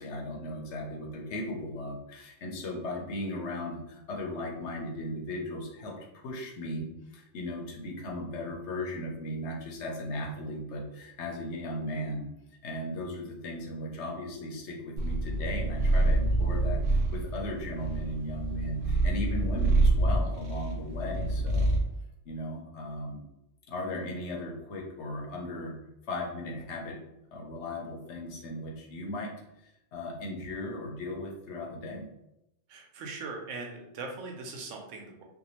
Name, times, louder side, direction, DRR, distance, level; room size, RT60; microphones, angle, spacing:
voice 1, 0.0-12.3 12.6-21.8 22.3-23.2 23.7-25.7 26.1-27.0 27.3-29.3 29.6-32.1, left 1 dB, 75° left, 0 dB, 0.9 m, -37 dB
Purr, 15.0-21.9, right 2 dB, 60° right, 0.6 m, -27 dB
voice 2, 32.7-35.2, right 3 dB, 90° right, 2 dB, 1.0 m, -40 dB
2.6 x 2.2 x 2.9 m, 0.86 s
omnidirectional pair, 1.2 m